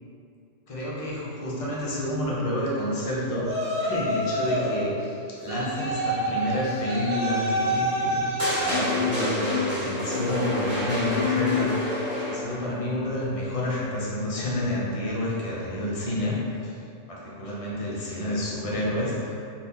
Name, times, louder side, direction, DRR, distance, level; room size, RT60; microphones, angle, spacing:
voice 1, 0.7-16.7 17.1-19.4, left 1 dB, 45° left, -6 dB, 0.5 m, -29 dB
Yell, 3.4-4.8 5.5-8.8, right 1 dB, 50° right, 0.7 m, -27 dB
sound 1, 8.4-12.7, left 3 dB, 15° right, 0.9 m, -27 dB
2.7 x 2.4 x 3.5 m, 2.5 s
omnidirectional pair, 1.2 m